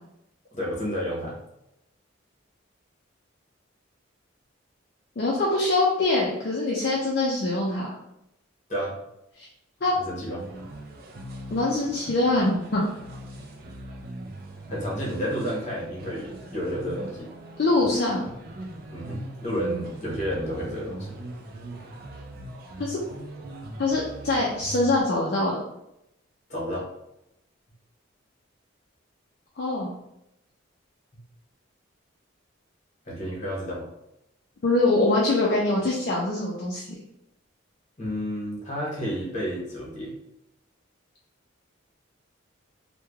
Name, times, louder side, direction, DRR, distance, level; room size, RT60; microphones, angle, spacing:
voice 1, 0.5-1.4 8.7-9.0 9.9-10.4 14.7-17.3 18.9-21.1 26.5-26.9 31.1-31.2 33.1-33.9 38.0-40.1, equal, 35° left, -5 dB, 0.8 m, -31 dB
voice 2, 5.2-7.9 9.4-9.5 9.8-9.9 11.5-12.9 17.6-18.2 22.8-23.0 23.8-25.6 29.6-29.9 34.6-36.9, left 2 dB, 50° left, -4 dB, 0.4 m, -23 dB
sound 1, 10.4-25.0, right 1 dB, 45° right, 0.4 m, -40 dB
3.1 x 2.2 x 2.3 m, 0.84 s
head